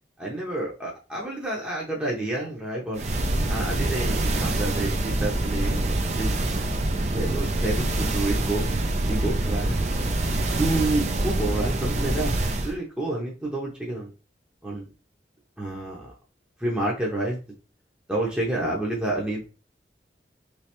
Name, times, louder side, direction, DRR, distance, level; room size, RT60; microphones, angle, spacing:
voice 1, 0.2-3.0 3.5-6.5 7.1-8.7 9.0-9.8 10.5-12.4 12.6-14.1 14.6-14.9 15.6-16.1 16.6-17.4 18.1-19.5, right 2 dB, 5° right, -4 dB, 0.7 m, -29 dB
sound 1, 3.0-12.7, right 2 dB, 40° right, 0.4 m, -25 dB
3.3 x 3.1 x 3.0 m, 0.33 s
head